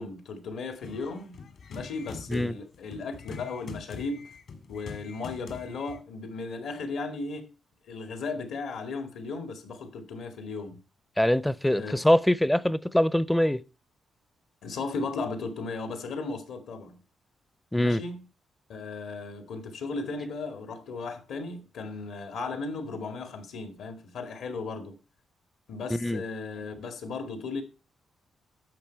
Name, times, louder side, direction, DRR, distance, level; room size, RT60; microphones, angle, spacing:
voice 1, 0.0-1.4 1.7-4.3 4.7-7.5 7.8-10.8 11.7-12.0 14.6-17.0 17.7-18.3 18.7-25.0 25.7-27.6, left 3 dB, 80° left, 2.0 m, -36 dB
sound 1, 0.8-6.0, left 5 dB, 65° left, 1.9 m, -44 dB
voice 2, 11.2-13.6 17.7-18.0 25.9-26.2, left 1 dB, 5° left, 0.4 m, -23 dB
10.5 x 7.2 x 4.5 m
cardioid pair, 110°, 0 cm